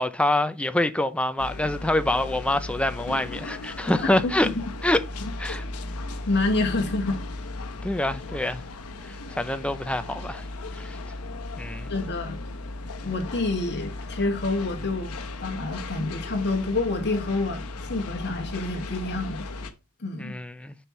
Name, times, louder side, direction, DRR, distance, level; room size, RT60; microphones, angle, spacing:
voice 1, 0.0-4.5 4.8-5.0 5.4-5.6 7.8-8.6 9.4-10.4 10.7-11.0 11.6-11.9 20.2-20.8, left 1 dB, 5° left, 0.5 m, -25 dB
sound 1, 1.4-19.7, left 2 dB, 90° left, 1.0 m, -36 dB
sound 2, 2.6-10.4, equal, 30° left, 1.5 m, -43 dB
voice 2, 4.2-4.6 6.3-7.2 11.9-12.5 13.0-15.1 15.4-19.5 20.0-20.4, left 2 dB, 50° left, 2.0 m, -28 dB
6.7 x 6.0 x 3.1 m
head